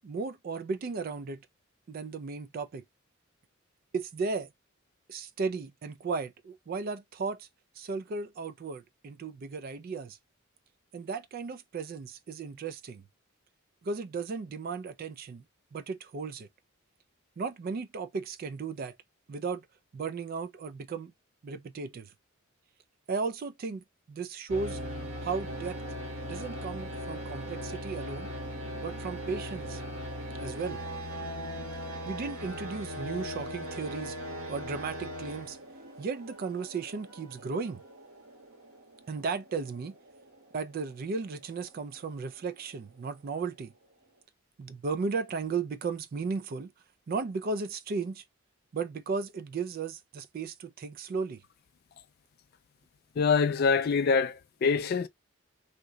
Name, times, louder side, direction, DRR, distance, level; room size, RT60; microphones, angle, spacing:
voice 1, 0.0-1.5 1.9-2.8 3.9-4.5 5.1-7.5 7.8-10.2 10.9-13.0 13.8-15.4 15.7-16.5 17.4-19.0 19.3-19.7 19.9-21.1 21.4-22.1 23.1-24.8 25.2-25.8 26.3-28.3 28.8-29.8 30.4-30.8 32.0-34.2 34.5-35.6 36.0-37.8 39.1-40.0 40.5-43.7 44.6-46.7 47.1-48.2 48.7-51.4, right 4 dB, 45° right, 0.3 m, -35 dB
sound 1, 24.5-42.7, equal, 90° right, 1.5 m, -40 dB
voice 2, 53.2-55.1, left 5 dB, 50° left, 0.3 m, -25 dB
2.8 x 2.1 x 3.7 m
head